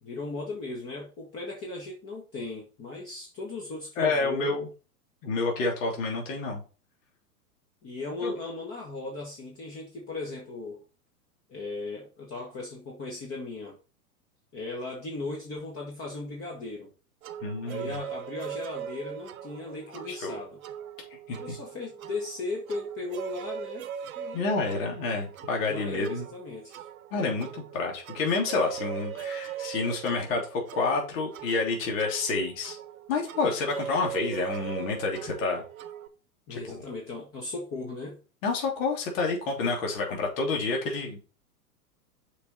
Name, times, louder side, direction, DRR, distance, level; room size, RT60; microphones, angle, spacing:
voice 1, 0.0-4.6 7.8-10.8 11.5-13.8 14.5-16.9 17.7-20.6 21.3-23.9 24.2-24.5 25.7-26.9 36.5-38.2, left 3 dB, 30° left, 2.0 m, -37 dB
voice 2, 4.0-4.7 5.2-6.6 8.2-8.3 17.4-18.0 20.1-20.4 21.3-21.6 24.3-26.2 27.1-32.8 33.1-35.6 36.5-36.6 38.4-41.2, left 3 dB, 55° left, 3.1 m, -29 dB
sound 1, 17.2-36.1, right 10 dB, 60° right, 1.1 m, -40 dB
6.6 x 5.2 x 4.2 m
hypercardioid pair, 105°, 47 cm